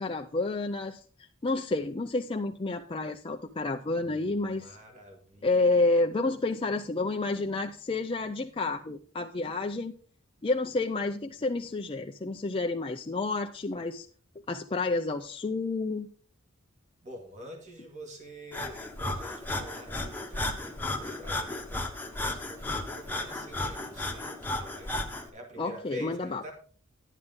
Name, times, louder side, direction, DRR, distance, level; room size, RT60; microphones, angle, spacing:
voice 1, 0.0-4.8 5.4-9.9 10.4-14.1 14.5-16.1 25.6-26.4, left 3 dB, 25° left, 4 dB, 0.5 m, -30 dB
voice 2, 4.0-5.9 17.0-21.9 22.2-26.5, equal, 35° right, 2 dB, 2.4 m, -46 dB
Breathing, 18.5-25.3, left 2 dB, 10° left, 1.2 m, -34 dB
11.0 x 9.5 x 3.7 m, 0.43 s
head